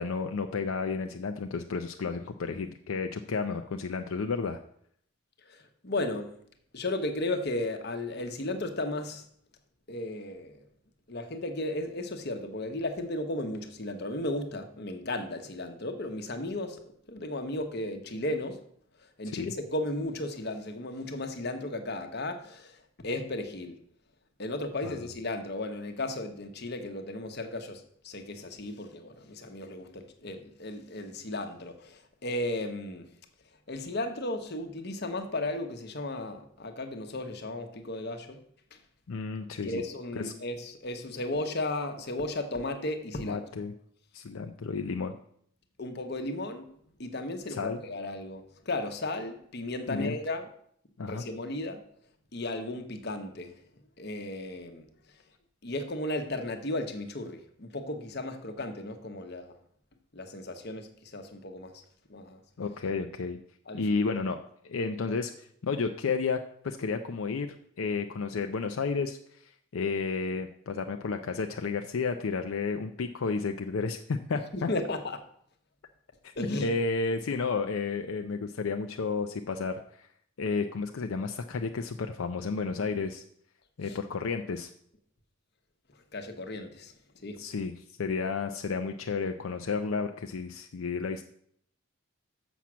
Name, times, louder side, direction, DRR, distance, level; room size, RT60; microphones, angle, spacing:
voice 1, 0.0-4.6 19.3-19.5 24.8-24.9 39.1-39.8 40.1-40.3 43.2-43.7 44.1-45.1 47.6-47.8 49.9-50.2 51.0-51.2 62.6-63.4 63.7-64.4 64.6-66.4 66.6-74.7 76.2-76.3 76.6-80.1 80.4-83.2 83.8-84.7 87.4-91.2, left 4 dB, 75° left, 5 dB, 0.5 m, -32 dB
voice 2, 5.4-6.3 6.7-9.2 9.9-10.6 11.1-18.6 19.2-23.8 24.4-33.1 33.7-38.4 38.7-38.8 39.6-43.4 45.8-46.7 47.0-50.4 51.0-51.8 52.3-53.5 54.0-54.9 55.6-59.5 60.1-61.8 62.1-62.4 63.7-63.8 74.5-75.2 76.4-76.7 83.8-84.0 86.1-86.9 87.2-87.4, left 2 dB, 50° left, 7 dB, 1.0 m, -35 dB
7.1 x 5.9 x 6.1 m, 0.65 s
head